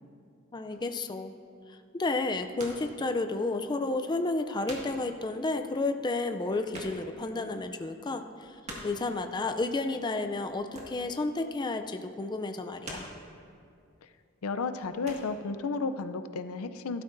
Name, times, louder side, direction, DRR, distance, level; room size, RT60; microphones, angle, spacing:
voice 1, 0.5-1.3 1.9-8.5 8.8-13.1, left 2 dB, 20° left, 7 dB, 0.4 m, -31 dB
sound 1, 0.7-1.0 2.1-3.0 3.3-3.4 4.0-4.1 4.3-5.1 5.4-5.5 5.7-5.8 6.1-7.3 7.7-7.8 8.2-9.1 10.4-11.2 11.5-11.8 12.4-13.4 14.0-14.3 14.6-15.3, right 1 dB, 35° right, 1.8 m, -45 dB
voice 2, 14.4-17.0, left 4 dB, 85° left, 11 dB, 0.5 m, -33 dB
15.5 x 12.5 x 2.6 m, 2.4 s
head